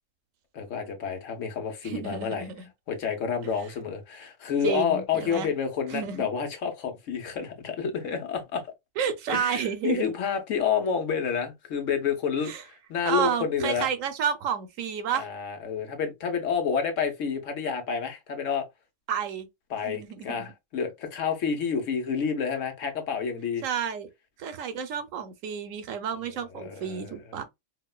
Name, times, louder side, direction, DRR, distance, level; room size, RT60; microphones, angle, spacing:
voice 1, 0.5-2.5 2.9-8.6 9.3-13.9 15.1-18.6 19.7-23.6 26.6-27.1, left 6 dB, 75° left, 1.2 m, -29 dB
voice 2, 1.8-2.7 4.6-5.5 5.9-6.3 9.0-10.0 12.4-12.6 13.1-15.3 19.1-19.5 19.8-20.5 23.6-24.1 24.4-27.4, right 8 dB, 90° right, 1.1 m, -30 dB
4.5 x 2.1 x 2.3 m
omnidirectional pair, 1.3 m